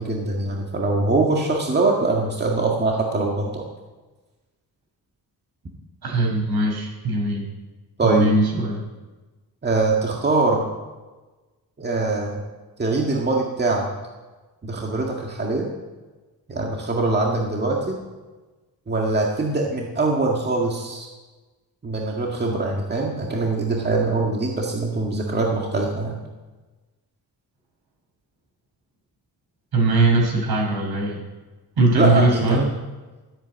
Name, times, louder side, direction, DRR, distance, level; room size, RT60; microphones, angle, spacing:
voice 1, 0.0-3.7 8.0-8.3 9.6-10.7 11.8-12.4 12.8-13.9 14.6-15.7 16.5-18.0 18.9-21.1 21.8-26.2 31.9-32.6, right 3 dB, 25° right, -1 dB, 1.9 m, -23 dB
voice 2, 6.0-7.4 8.0-8.8 29.7-31.2 31.8-32.7, right 2 dB, 75° right, -1 dB, 5.8 m, -20 dB
13.5 x 9.0 x 8.8 m, 1.2 s
wide cardioid pair, 155°, 38 cm